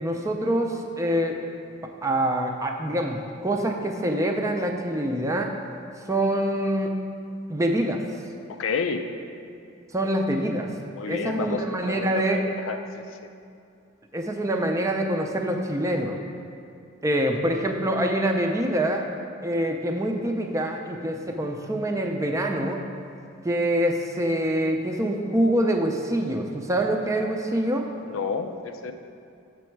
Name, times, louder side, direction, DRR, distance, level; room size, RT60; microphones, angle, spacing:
voice 1, 0.0-1.4 2.0-5.5 6.1-6.9 7.5-8.0 9.9-10.7 11.0-12.4 14.1-16.2 17.0-19.0 19.4-22.8 23.4-27.9, right 1 dB, 15° right, 3 dB, 0.5 m, -25 dB
voice 2, 8.5-9.1 11.0-12.8 28.1-28.9, left 5 dB, 90° left, 7 dB, 0.5 m, -30 dB
6.9 x 6.3 x 4.5 m, 2.4 s
head